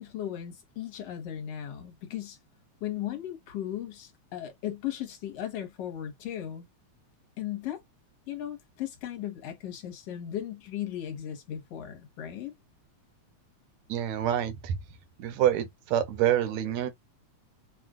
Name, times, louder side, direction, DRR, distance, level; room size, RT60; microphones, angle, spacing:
voice 1, 0.0-2.4 2.8-6.7 7.4-7.8 8.3-12.5, left 11 dB, 65° left, 2.0 m, -36 dB
voice 2, 13.9-14.8 15.2-16.9, right 11 dB, 75° right, 2.0 m, -27 dB
5.9 x 2.4 x 2.4 m
omnidirectional pair, 3.4 m